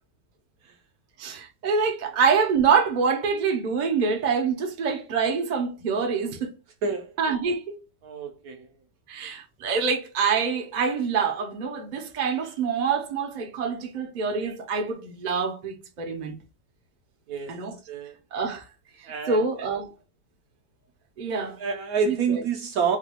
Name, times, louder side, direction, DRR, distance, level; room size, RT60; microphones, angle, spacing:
voice 1, 1.2-6.5 7.2-7.8 9.1-16.3 17.5-17.8 18.3-18.6 19.3-19.9 21.2-21.6 22.0-22.4, right 5 dB, 45° right, 0.6 m, -26 dB
voice 2, 6.8-7.1 8.0-8.6 17.3-17.5 17.9-18.1 19.1-19.4 21.6-23.0, right 6 dB, 70° right, 0.9 m, -27 dB
4.0 x 2.3 x 2.8 m
omnidirectional pair, 1.9 m